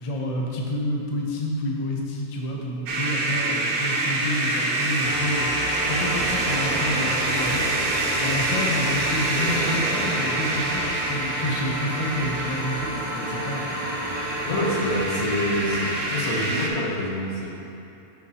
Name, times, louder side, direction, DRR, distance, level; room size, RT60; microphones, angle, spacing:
voice 1, 0.0-5.5 5.9-13.8, left 1 dB, 40° left, -1 dB, 0.6 m, -29 dB
sound 1, 2.9-16.7, right 2 dB, 70° right, 1.2 m, -26 dB
sound 2, 5.0-16.1, equal, 10° left, 1.3 m, -33 dB
sound 3, 5.7-10.9, equal, 25° right, 1.1 m, -34 dB
voice 2, 14.4-17.5, left 1 dB, 75° left, -4 dB, 1.7 m, -26 dB
12.5 x 4.3 x 2.8 m, 2.8 s
omnidirectional pair, 1.6 m